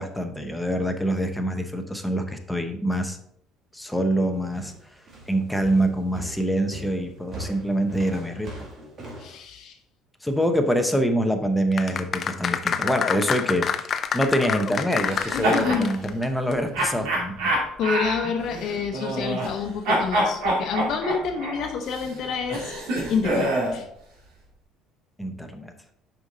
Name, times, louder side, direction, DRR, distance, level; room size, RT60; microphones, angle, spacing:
voice 1, 0.0-3.2 3.7-4.7 5.3-8.5 10.2-17.5 18.2-18.3 25.2-25.7, equal, 5° left, 5 dB, 0.8 m, -25 dB
sound 1, 4.5-9.4, right 1 dB, 40° right, 2.0 m, -40 dB
voice 2, 9.2-9.8 15.3-15.9 17.8-22.7 23.1-23.9, left 6 dB, 55° left, 4 dB, 0.8 m, -28 dB
sound 2, 11.7-16.2 16.5-16.6, left 7 dB, 35° left, 0.5 m, -27 dB
sound 3, 15.0-15.8 16.7-19.6 19.8-23.8, right 1 dB, 90° right, 2.8 m, -26 dB
6.9 x 5.4 x 3.9 m, 0.71 s
cardioid pair, 130°, 0 cm